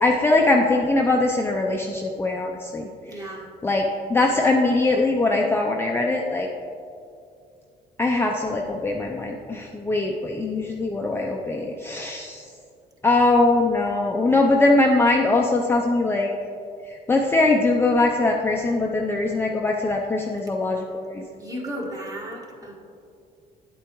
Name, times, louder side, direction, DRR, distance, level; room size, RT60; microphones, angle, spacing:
voice 1, 0.0-3.3 3.6-6.5 8.0-12.5 13.0-16.3 16.8-21.2, left 2 dB, 15° left, 0 dB, 0.5 m, -21 dB
voice 2, 3.0-3.5 21.4-22.7, right 1 dB, 20° right, -1 dB, 1.5 m, -34 dB
9.2 x 8.2 x 3.0 m, 2.4 s
cardioid pair, 110°, 17 cm